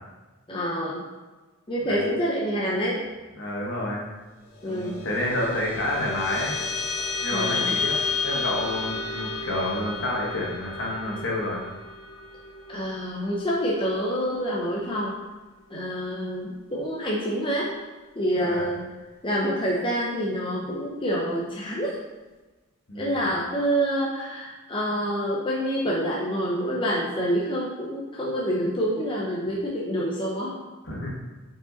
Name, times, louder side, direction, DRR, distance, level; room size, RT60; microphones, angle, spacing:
voice 1, 0.5-1.0 1.7-3.0 4.6-5.0 7.3-7.7 12.7-15.2 15.7-17.7 18.2-18.8 19.2-22.0 22.9-30.6, equal, 25° left, -4 dB, 0.7 m, -27 dB
voice 2, 3.4-4.1 4.6-6.6 7.2-7.9 8.2-11.6 18.4-18.6 22.9-23.3 30.8-31.2, left 1 dB, 55° left, -2 dB, 1.4 m, -29 dB
sound 1, 4.5-15.2, left 4 dB, 75° left, 1.1 m, -32 dB
5.3 x 4.9 x 4.0 m, 1.2 s
head